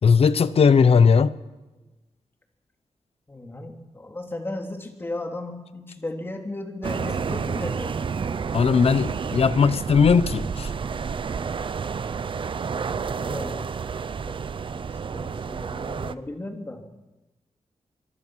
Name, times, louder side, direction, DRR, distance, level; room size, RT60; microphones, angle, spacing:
voice 1, 0.0-1.4 8.5-10.7, left 5 dB, 60° left, 15 dB, 0.9 m, -18 dB
voice 2, 3.3-8.1 12.6-13.7 14.2-14.4 14.7-16.8, left 2 dB, 20° left, 3 dB, 2.9 m, -36 dB
sound 1, 6.8-16.1, right 6 dB, 45° right, 0.7 m, -30 dB
25.5 x 21.5 x 6.3 m, 1.1 s
wide cardioid pair, 165°, 12 cm